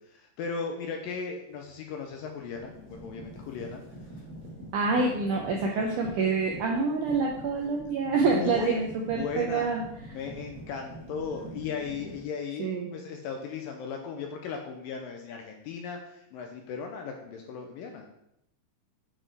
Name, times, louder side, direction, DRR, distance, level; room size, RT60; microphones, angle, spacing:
voice 1, 0.1-3.8 8.2-8.8 9.1-9.8 10.1-18.1, left 5 dB, 80° left, 3 dB, 2.1 m, -37 dB
sound 1, 1.6-1.8 2.2-12.2, right 1 dB, 60° right, 1.0 m, -45 dB
voice 2, 4.7-9.8 12.6-12.9, right 4 dB, 85° right, 0 dB, 1.8 m, -27 dB
8.8 x 4.5 x 3.3 m, 0.80 s
omnidirectional pair, 4.5 m